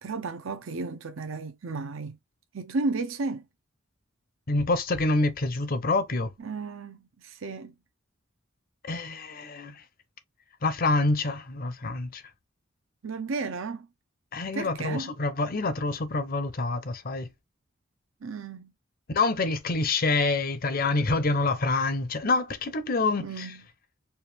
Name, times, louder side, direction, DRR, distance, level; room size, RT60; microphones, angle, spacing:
voice 1, 0.0-2.2 2.5-3.5 6.4-7.7 13.0-13.9 14.5-15.1 18.2-18.7 23.2-23.6, right 3 dB, 75° right, 0.6 m, -33 dB
voice 2, 4.5-6.3 8.8-9.8 10.6-12.2 14.3-17.3 19.1-23.5, left 3 dB, 45° left, 0.7 m, -27 dB
4.5 x 2.4 x 3.3 m
head